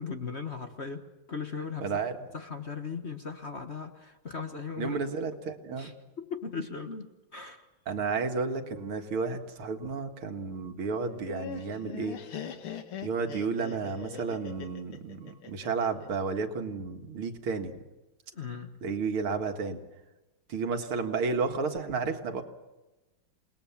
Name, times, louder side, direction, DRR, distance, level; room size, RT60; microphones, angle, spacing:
voice 1, 0.0-2.0 2.3-5.0 5.7-7.6 18.3-18.8, left 5 dB, 35° left, 6 dB, 1.4 m, -38 dB
voice 2, 1.8-2.2 4.8-5.9 7.9-12.2 13.0-17.7 18.8-19.8 20.5-22.4, right 4 dB, 75° right, 6 dB, 2.7 m, -32 dB
Laughter, 11.0-16.1, left 7 dB, 85° left, 2.6 m, -41 dB
28.5 x 20.5 x 7.2 m, 1.1 s
omnidirectional pair, 2.4 m